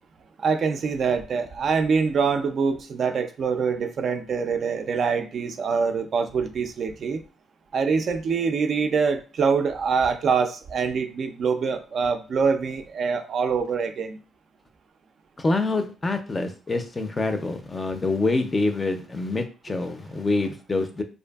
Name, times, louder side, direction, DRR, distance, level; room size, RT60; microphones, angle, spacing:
voice 1, 0.4-7.2 7.7-14.2, right 5 dB, 55° right, 7 dB, 0.3 m, -24 dB
voice 2, 15.4-21.0, left 2 dB, 25° left, 7 dB, 0.4 m, -26 dB
2.5 x 2.5 x 2.3 m, 0.35 s
cardioid pair, 90°, 0 cm